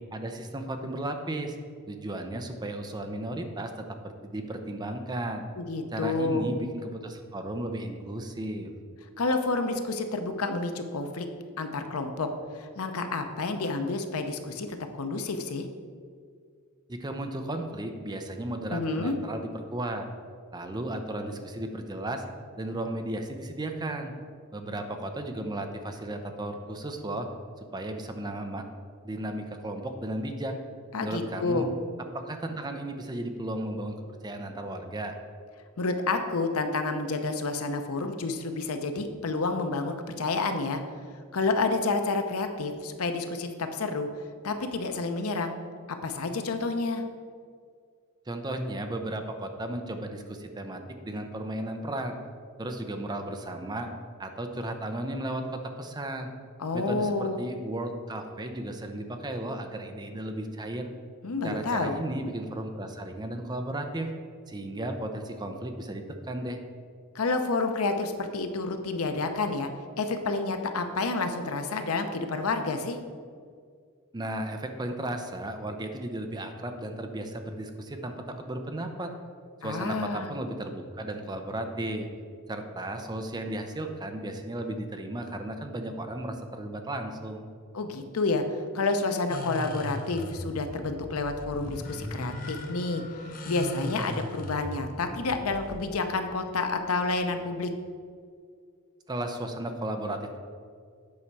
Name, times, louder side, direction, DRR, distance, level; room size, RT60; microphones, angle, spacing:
voice 1, 0.1-1.6 1.9-5.4 5.9-8.7 16.9-20.1 20.5-22.2 22.6-24.1 24.5-27.3 27.6-28.6 29.0-30.5 31.0-31.7 32.1-33.9 34.2-35.2 48.3-52.2 52.6-53.9 54.2-56.3 56.7-60.9 61.4-64.1 64.5-66.6 74.1-79.1 79.6-82.1 82.5-87.4 99.1-100.4, right 1 dB, 20° right, 5 dB, 0.6 m, -34 dB
voice 2, 5.6-6.5 9.2-11.3 11.6-15.7 18.7-19.2 30.9-31.7 35.8-40.8 41.3-44.1 44.4-45.5 46.0-47.0 56.6-57.4 61.2-62.0 67.1-69.7 70.0-73.0 79.6-80.3 87.7-97.7, left 3 dB, 85° left, 7 dB, 0.7 m, -29 dB
sound 1, 89.3-97.6, left 1 dB, 40° left, 0.8 m, -39 dB
8.6 x 5.5 x 4.7 m, 2.1 s
head